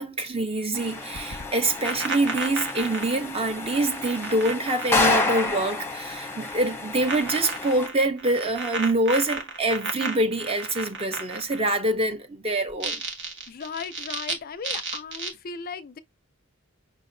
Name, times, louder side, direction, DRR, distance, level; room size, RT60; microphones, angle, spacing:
voice 1, 0.0-13.0, right 1 dB, 30° right, 0.7 m, -25 dB
sound 1, 0.7-7.9, left 3 dB, 10° left, 0.8 m, -30 dB
sound 2, 1.1-5.8 6.1-6.7 7.0-11.8 12.7-14.3 14.6-15.3, right 3 dB, 60° right, 1.2 m, -33 dB
voice 2, 13.5-16.0, left 5 dB, 45° left, 0.4 m, -36 dB
5.8 x 2.7 x 2.6 m
head